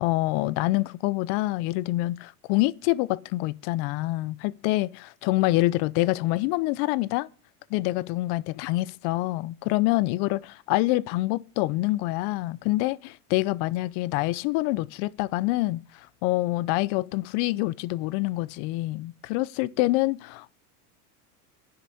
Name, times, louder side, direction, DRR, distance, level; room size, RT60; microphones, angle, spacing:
voice 1, 0.0-7.3 7.7-20.5, left 19 dB, 55° left, 0.7 m, -26 dB
10.0 x 6.5 x 8.5 m
hypercardioid pair, 95°, 47 cm